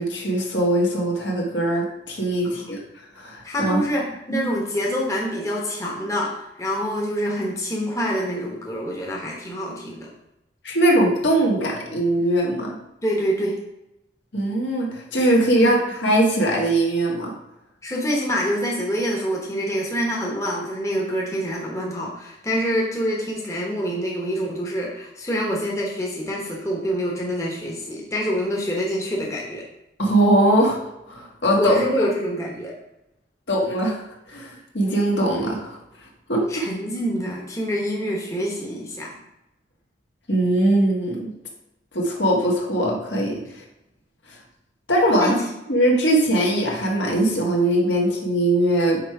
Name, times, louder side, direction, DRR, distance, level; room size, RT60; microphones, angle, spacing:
voice 1, 0.0-2.8 3.1-3.8 4.3-4.5 10.6-12.8 14.3-17.3 30.0-30.8 31.1-31.8 33.5-35.8 36.3-36.4 40.3-41.3 41.9-43.6 44.3-44.4 44.9-45.3 45.7-49.0, right 1 dB, 70° left, -1 dB, 1.6 m, -21 dB
voice 2, 3.4-10.1 13.0-13.6 15.5-15.7 17.8-29.7 31.6-32.7 36.5-39.2 45.2-45.5, equal, 15° left, -2 dB, 1.0 m, -26 dB
5.8 x 4.5 x 4.7 m, 0.88 s
head